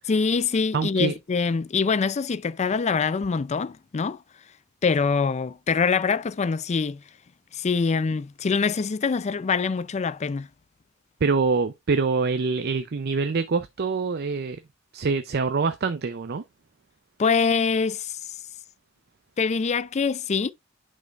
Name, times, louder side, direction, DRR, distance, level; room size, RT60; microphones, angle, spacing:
voice 1, 0.1-4.2 4.8-7.0 7.5-10.5 17.2-18.2 19.4-20.5, left 5 dB, 35° left, 0.4 m, -24 dB
voice 2, 0.7-1.1 11.2-14.6 14.9-16.4, right 4 dB, 50° right, 0.5 m, -25 dB
9.5 x 5.4 x 2.4 m
head